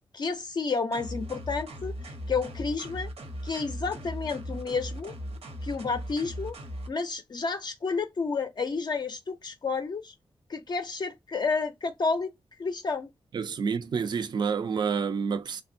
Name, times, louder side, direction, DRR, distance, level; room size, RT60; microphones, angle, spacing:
voice 1, 0.1-2.0 2.3-3.1 3.4-5.1 5.6-6.6 6.9-10.1 10.5-12.3 12.6-13.1, left 4 dB, 45° left, 0.4 m, -30 dB
sound 1, 0.9-6.9, equal, 80° right, 0.9 m, -38 dB
voice 2, 13.3-15.6, right 6 dB, 45° right, 0.4 m, -28 dB
3.3 x 2.1 x 2.6 m
wide cardioid pair, 175°, 10 cm